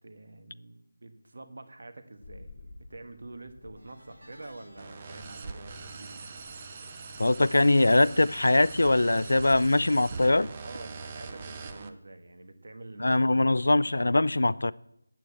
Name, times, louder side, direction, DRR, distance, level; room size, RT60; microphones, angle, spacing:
voice 1, 0.0-6.3 10.6-13.1, right 2 dB, 50° right, 7 dB, 1.4 m, -47 dB
sound 1, 2.2-11.0, left 3 dB, 20° left, 0.9 m, -54 dB
sound 2, 3.8-9.2 9.4-9.8 11.0-11.1, right 1 dB, 80° right, 4.8 m, -60 dB
sound 3, 4.8-11.9, right 4 dB, 15° right, 0.5 m, -42 dB
voice 2, 7.2-10.5 13.0-14.7, left 2 dB, 70° left, 19 dB, 0.5 m, -22 dB
9.2 x 8.4 x 8.5 m, 0.82 s
figure-of-eight pair, 180°, 0 cm